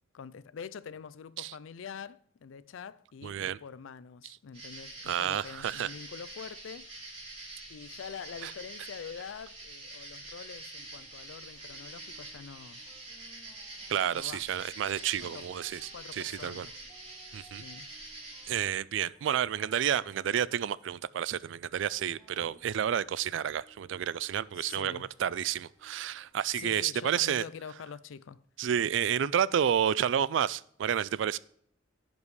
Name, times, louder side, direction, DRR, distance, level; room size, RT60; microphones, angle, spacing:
voice 1, 0.1-6.9 7.7-12.8 14.1-14.4 15.2-15.5 15.9-16.7 17.6-17.9 24.5-25.1 26.5-28.4, left 6 dB, 80° left, 0.4 m, -45 dB
voice 2, 3.2-3.6 5.1-5.9 8.4-8.5 13.9-16.7 17.3-17.6 18.5-27.4 28.6-31.4, right 9 dB, 65° right, 0.3 m, -30 dB
sound 1, 4.5-18.5, right 2 dB, 30° right, 3.6 m, -46 dB
sound 2, 10.7-26.3, equal, 5° right, 2.1 m, -62 dB
15.5 x 5.3 x 3.1 m
head